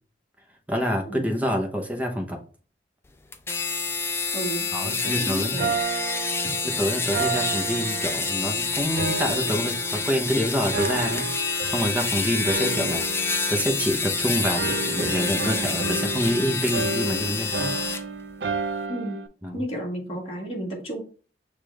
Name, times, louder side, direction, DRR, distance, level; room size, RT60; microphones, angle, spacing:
voice 1, 0.7-2.4 4.7-5.6 6.6-17.8 19.4-19.6, equal, 10° right, 2 dB, 0.8 m, -27 dB
sound 1, 3.3-18.0, left 4 dB, 15° left, 0.3 m, -28 dB
voice 2, 4.3-5.7 18.9-19.2 19.5-21.0, right 1 dB, 35° left, -2 dB, 1.7 m, -32 dB
sound 2, 5.6-8.5 9.0-10.3 10.7-12.1 12.4-14.2 14.5-19.3, right 4 dB, 65° right, 0.5 m, -31 dB
6.7 x 2.5 x 3.2 m, 0.39 s
head